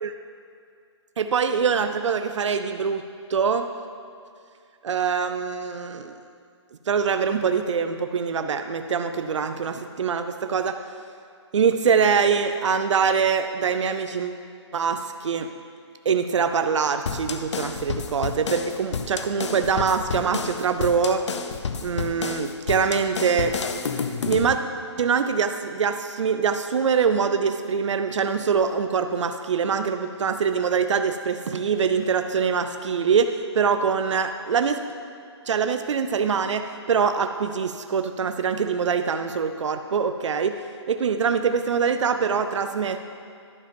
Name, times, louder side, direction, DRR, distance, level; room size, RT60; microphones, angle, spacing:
voice 1, 1.2-3.0 3.3-3.7 4.8-6.1 6.9-10.8 11.5-14.4 14.7-15.5 16.1-21.3 21.8-23.6 24.3-24.6 25.0-34.8 35.5-40.6 40.9-43.0, right 6 dB, 90° right, 8 dB, 0.5 m, -24 dB
sound 1, 17.1-24.6, left 5 dB, 75° left, 0.7 m, -30 dB
11.5 x 5.1 x 5.2 m, 2.3 s
hypercardioid pair, 165°, 15 cm